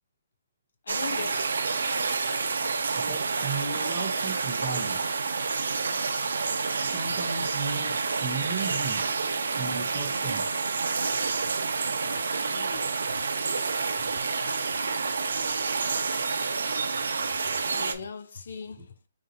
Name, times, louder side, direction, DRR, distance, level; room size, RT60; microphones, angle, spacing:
voice 1, 0.9-1.5 12.5-12.9 14.9-15.0 17.6-18.9, left 5 dB, 55° left, 0.4 m, -39 dB
sound 1, 0.9-17.9, right 4 dB, 85° right, 0.7 m, -28 dB
voice 2, 3.0-5.2 6.8-9.0 9.6-10.4 18.7-18.9, right 4 dB, 15° right, 0.6 m, -35 dB
5.3 x 2.7 x 2.6 m
hypercardioid pair, 175°, 0 cm